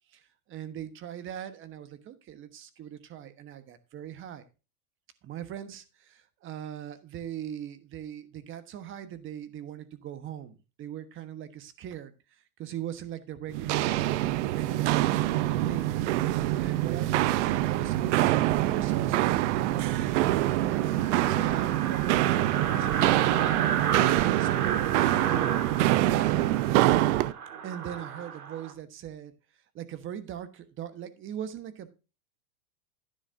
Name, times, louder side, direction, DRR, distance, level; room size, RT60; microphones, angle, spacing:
voice 1, 0.1-4.5 5.2-14.0 14.4-16.0 16.6-20.8 21.3-23.3 23.7-25.5 25.9-26.7 27.6-29.3 29.7-31.9, right 10 dB, 25° right, 11 dB, 1.3 m, -40 dB
Walk footsteps, 13.5-27.3, right 15 dB, 50° right, 0.7 m, -25 dB
sound 1, 20.0-28.7, right 8 dB, 75° right, 2.5 m, -33 dB
11.0 x 10.0 x 2.7 m, 0.30 s
hypercardioid pair, 135°, 45 cm